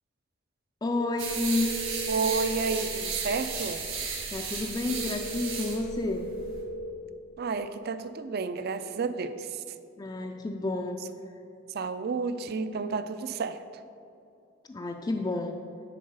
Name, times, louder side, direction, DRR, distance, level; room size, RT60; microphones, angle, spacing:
voice 1, 0.8-1.7 4.3-6.3 10.0-11.0 14.7-15.6, left 2 dB, 20° left, 4 dB, 0.3 m, -30 dB
sound 1, 0.9-2.9 4.9-6.9, right 1 dB, 85° left, 1.1 m, -37 dB
sound 2, 1.2-6.6, right 5 dB, 90° right, 1.7 m, -34 dB
voice 2, 2.1-3.8 7.4-9.6 11.7-13.6, right 4 dB, 55° right, 11 dB, 0.4 m, -31 dB
10.0 x 3.9 x 5.4 m, 2.7 s
head